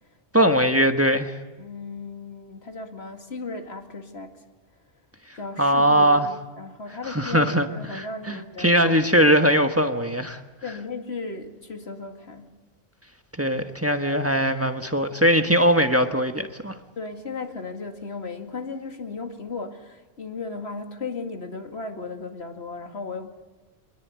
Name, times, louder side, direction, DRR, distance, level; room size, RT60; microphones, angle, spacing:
voice 1, 0.3-1.3 5.6-6.3 7.1-7.7 7.9-10.4 13.4-16.8, equal, 15° right, 6 dB, 1.4 m, -20 dB
voice 2, 1.6-4.3 5.4-9.2 10.6-12.5 17.0-23.5, left 3 dB, 75° left, 5 dB, 2.6 m, -36 dB
25.0 x 21.5 x 9.5 m, 1.2 s
omnidirectional pair, 1.1 m